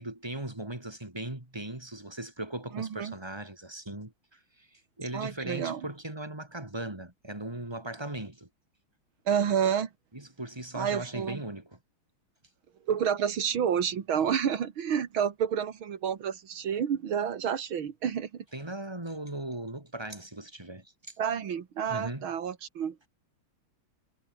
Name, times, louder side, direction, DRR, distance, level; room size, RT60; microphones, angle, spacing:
voice 1, 0.0-8.5 10.1-11.8 18.5-21.1 21.9-22.3, right 1 dB, 10° right, 3.6 m, -38 dB
voice 2, 2.7-3.2 5.1-5.9 9.3-9.9 10.7-11.4 12.9-18.4 21.2-23.1, right 8 dB, 75° right, 2.6 m, -29 dB
omnidirectional pair, 2.2 m